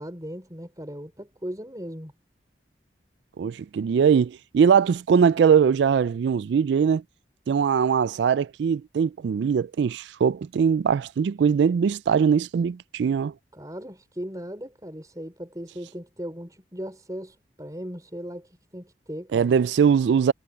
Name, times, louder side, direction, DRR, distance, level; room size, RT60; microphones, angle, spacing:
voice 1, 0.0-2.1 13.5-19.5, equal, 20° right, 4.7 m, -38 dB
voice 2, 3.4-7.0 7.5-13.3 19.3-20.3, right 7 dB, 75° right, 0.3 m, -21 dB
head